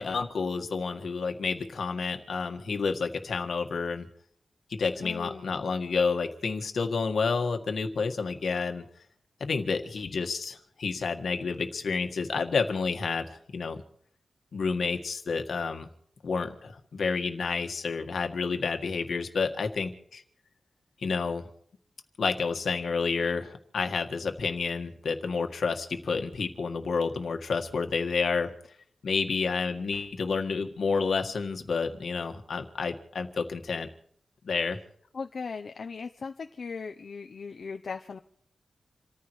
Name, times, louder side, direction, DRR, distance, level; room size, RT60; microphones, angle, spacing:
voice 1, 0.0-4.1 4.7-8.9 9.4-13.8 14.5-15.9 16.2-20.2 21.0-21.5 22.2-28.5 29.0-33.9 34.4-34.8, left 4 dB, 70° left, 5 dB, 1.7 m, -30 dB
voice 2, 5.0-5.7 35.1-38.2, left 5 dB, 55° left, 6 dB, 0.7 m, -38 dB
28.5 x 14.5 x 3.2 m, 0.63 s
wide cardioid pair, 160°, 0 cm